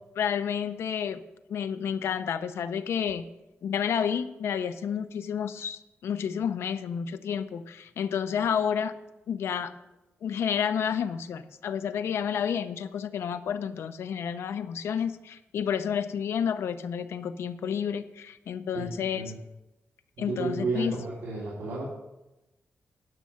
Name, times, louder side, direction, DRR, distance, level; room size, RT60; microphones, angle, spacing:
voice 1, 0.2-1.2 1.5-3.3 3.6-8.9 9.3-9.7 10.2-19.2 20.2-21.0, left 8 dB, 85° left, 11 dB, 0.6 m, -30 dB
voice 2, 18.7-19.3 20.2-21.8, right 3 dB, 90° right, -5 dB, 2.4 m, -32 dB
11.0 x 6.3 x 5.7 m, 0.96 s
wide cardioid pair, 155°, 4 cm